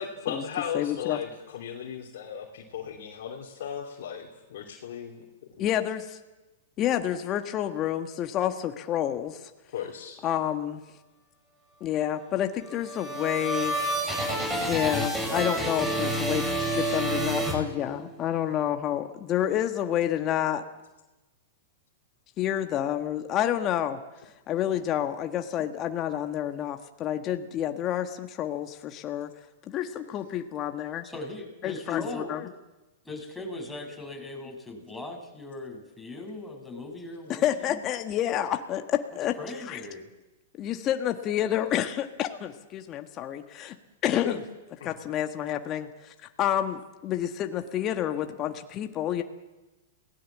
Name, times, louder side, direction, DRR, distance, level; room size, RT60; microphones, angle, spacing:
voice 1, 0.0-5.2 9.7-10.2 43.6-43.7 44.1-44.3 44.8-44.9, left 8 dB, 65° left, -1 dB, 3.0 m, -36 dB
voice 2, 0.7-1.2 5.6-6.2 6.8-9.4 10.2-10.8 11.8-13.7 14.7-20.6 22.4-24.0 24.5-29.3 29.7-31.1 31.6-32.5 37.3-39.3 39.6-39.8 40.6-43.7 44.0-44.4 44.8-46.1 46.4-49.2, left 11 dB, 35° left, 6 dB, 1.5 m, -29 dB
sound 1, 12.6-18.2, right 1 dB, 10° right, 6.9 m, -29 dB
voice 3, 31.0-32.4 33.0-37.8 39.4-40.0, left 2 dB, 5° left, 0 dB, 5.9 m, -39 dB
28.0 x 18.0 x 7.5 m, 1.1 s
hypercardioid pair, 115°, 0 cm